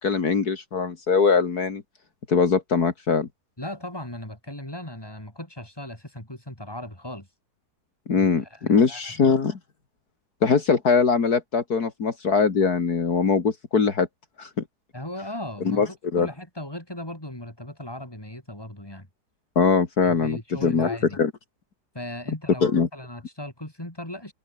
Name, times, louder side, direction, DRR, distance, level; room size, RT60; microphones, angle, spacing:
voice 1, 0.0-1.8 2.3-3.3 8.1-9.6 10.4-14.1 14.4-14.6 15.7-15.9 16.1-16.3 19.6-21.3 22.6-22.9, left 5 dB, 65° left, 2.7 m, -22 dB
voice 2, 3.6-7.3 8.1-9.2 14.9-19.1 20.0-21.2 21.9-24.3, left 1 dB, 15° left, 5.5 m, -37 dB
omnidirectional pair, 1.7 m